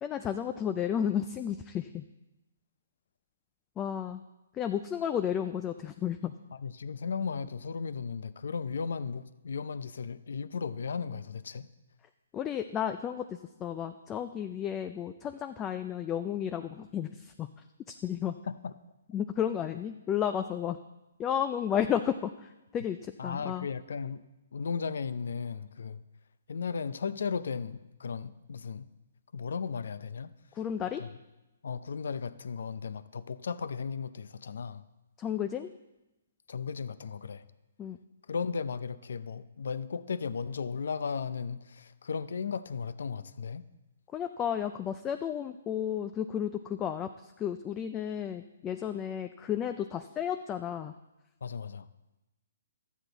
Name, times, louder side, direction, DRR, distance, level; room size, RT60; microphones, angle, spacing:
voice 1, 0.0-2.0 3.8-4.2 4.5-6.3 12.3-17.5 17.9-18.4 19.1-20.8 21.2-23.7 30.5-31.0 35.2-35.7 37.8-38.0 44.1-50.9, left 9 dB, 15° left, 8 dB, 0.3 m, -32 dB
voice 2, 6.6-11.7 18.5-18.7 23.2-24.2 24.5-26.0 26.5-28.9 29.3-30.3 31.0-31.1 31.6-34.8 36.5-37.5 38.3-43.6 51.4-51.9, left 5 dB, 70° left, 15 dB, 0.5 m, -35 dB
12.5 x 8.2 x 4.0 m, 0.99 s
hypercardioid pair, 155°, 0 cm